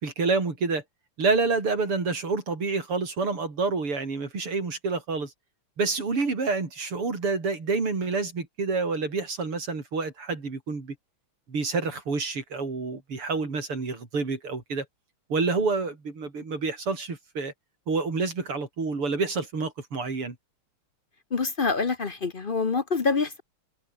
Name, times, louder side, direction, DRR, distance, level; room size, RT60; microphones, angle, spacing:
voice 1, 0.0-0.8 1.2-5.3 5.8-10.9 11.5-14.9 15.3-17.5 17.9-20.4, right 4 dB, 85° right, 5.5 m, -28 dB
voice 2, 21.3-23.4, left 4 dB, 40° left, 0.7 m, -26 dB
omnidirectional pair, 2.4 m